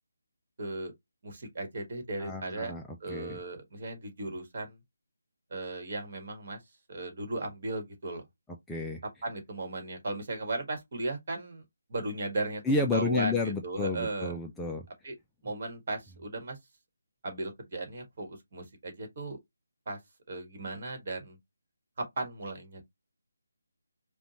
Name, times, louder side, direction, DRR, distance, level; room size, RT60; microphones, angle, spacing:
voice 1, 0.6-0.9 1.2-2.7 3.0-4.8 5.5-6.6 6.9-8.2 9.2-11.6 11.9-12.6 12.9-14.4 15.0-15.1 15.4-16.6 17.2-19.4 19.9-20.0 20.3-21.4 22.0-22.8, right 2 dB, 40° right, 1.5 m, -36 dB
voice 2, 2.2-3.4 8.7-9.0 12.6-14.9, left 3 dB, 5° left, 0.4 m, -31 dB
5.0 x 2.3 x 3.0 m
figure-of-eight pair, 150°, 0 cm